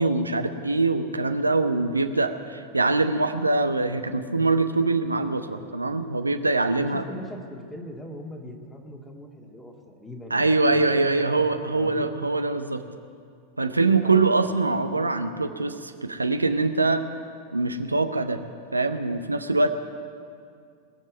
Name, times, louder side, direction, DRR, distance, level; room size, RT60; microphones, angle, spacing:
voice 1, 0.0-7.0 10.3-12.8 13.6-17.0 17.5-18.4 18.7-19.7, right 3 dB, 80° right, 8 dB, 0.7 m, -23 dB
voice 2, 6.7-11.1 11.4-11.5 11.7-12.1 14.0-14.2, equal, 10° left, 1 dB, 2.0 m, -41 dB
20.0 x 7.4 x 9.3 m, 2.3 s
figure-of-eight pair, 90°, 0 cm